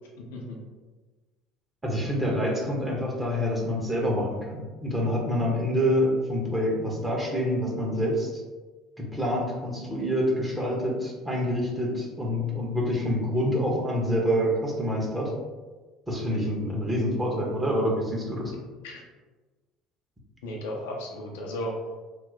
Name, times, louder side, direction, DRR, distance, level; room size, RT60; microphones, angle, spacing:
voice 1, 1.8-8.4 9.0-15.3 16.1-18.5, equal, 15° right, -3 dB, 1.1 m, -27 dB
voice 2, 20.4-21.8, left 1 dB, 70° left, -1 dB, 0.5 m, -35 dB
2.9 x 2.1 x 3.9 m, 1.3 s
figure-of-eight pair, 60°, 0 cm